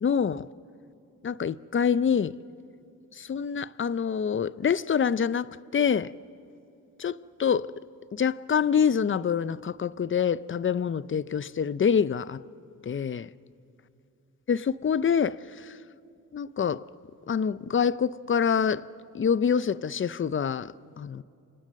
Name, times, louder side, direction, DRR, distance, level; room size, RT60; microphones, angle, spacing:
voice 1, 0.0-0.5 1.2-2.3 3.2-6.1 7.0-7.7 8.1-12.4 12.8-13.3 14.5-15.7 16.3-16.8 17.3-18.9 19.1-21.2, left 7 dB, 35° left, 0.5 m, -26 dB
28.5 x 25.5 x 6.5 m
cardioid pair, 80°, 34 cm